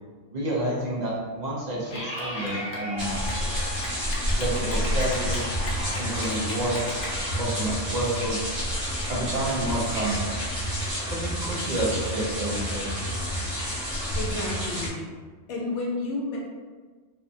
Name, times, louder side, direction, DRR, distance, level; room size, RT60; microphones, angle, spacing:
voice 1, 0.3-3.2 4.4-5.6 5.8-6.8 7.3-8.5 9.1-10.3 11.0-12.9, right 1 dB, 60° right, -4 dB, 0.4 m, -29 dB
Clapping / Cheering, 1.9-7.1, equal, 55° left, 0.5 m, -36 dB
sound 1, 3.0-14.9, equal, 85° right, 1.2 m, -29 dB
voice 2, 14.2-15.0 15.5-16.4, left 2 dB, 75° left, -2 dB, 0.9 m, -31 dB
2.8 x 2.1 x 2.5 m, 1.4 s
omnidirectional pair, 1.3 m